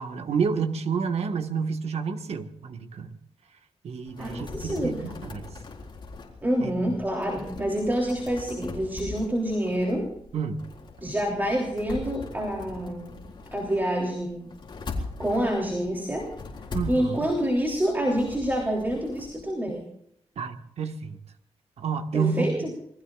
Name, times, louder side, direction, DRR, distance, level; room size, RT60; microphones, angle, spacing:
voice 1, 0.0-3.1 3.8-5.4 6.6-6.7 10.3-10.6 16.7-17.3 20.4-21.2 21.8-22.5, right 5 dB, 70° right, 7 dB, 1.5 m, -29 dB
sound 1, 4.1-19.4, left 3 dB, 45° left, 4.1 m, -41 dB
voice 2, 4.2-5.0 6.4-10.1 11.0-13.2 13.5-14.5 15.2-16.3 16.9-19.8 22.1-22.7, equal, 15° right, 0 dB, 3.2 m, -27 dB
28.0 x 21.0 x 2.5 m, 0.72 s
wide cardioid pair, 130°, 11 cm